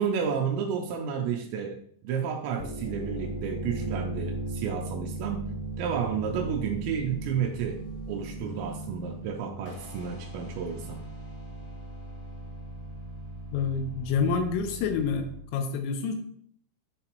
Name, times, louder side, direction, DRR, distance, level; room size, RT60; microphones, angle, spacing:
voice 1, 0.0-5.5 5.8-11.0, right 7 dB, 85° right, 3 dB, 2.6 m, -31 dB
sound 1, 2.6-15.4, right 2 dB, 60° left, 3.3 m, -38 dB
voice 2, 13.5-15.3 15.5-16.2, left 5 dB, 85° left, 6 dB, 3.4 m, -27 dB
11.0 x 3.9 x 3.0 m, 0.63 s
omnidirectional pair, 5.8 m